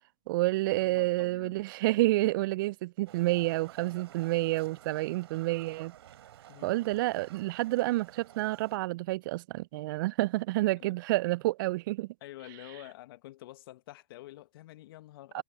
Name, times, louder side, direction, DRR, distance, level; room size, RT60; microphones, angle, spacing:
voice 1, 0.3-5.9 6.6-12.1 15.3-15.4, right 19 dB, 45° right, 0.5 m, -29 dB
voice 2, 0.8-1.6 6.5-6.9 10.8-11.0 12.2-15.4, left 16 dB, 50° left, 1.7 m, -48 dB
Livestock farm animals working animals, 3.1-8.8, right 12 dB, 60° right, 3.7 m, -52 dB
figure-of-eight pair, 115°, 16 cm